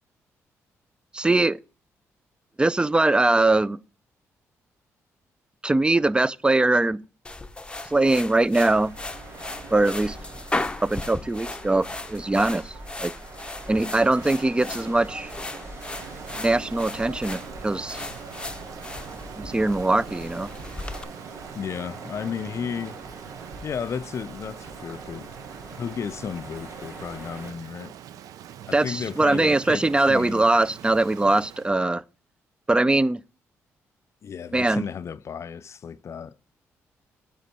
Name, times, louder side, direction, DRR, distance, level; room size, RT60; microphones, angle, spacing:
voice 1, 1.1-1.6 2.6-3.8 5.6-7.0 7.9-8.9 9.7-10.2 10.8-12.7 13.0-13.1 13.7-15.3 16.4-18.0 19.4-20.5 28.7-32.0 32.7-33.2 34.5-34.8, right 2 dB, 15° right, 0.4 m, -21 dB
sound 1, 7.2-21.0, left 2 dB, 15° left, 0.8 m, -37 dB
sound 2, 8.6-27.5, right 2 dB, 55° right, 3.8 m, -42 dB
Rain, 15.9-31.7, right 10 dB, 80° right, 0.5 m, -44 dB
voice 2, 21.5-23.0 23.6-25.3 25.7-27.9 28.7-30.4 34.2-36.4, left 7 dB, 50° left, 0.4 m, -33 dB
9.0 x 5.2 x 4.3 m
supercardioid pair, 65°, 6 cm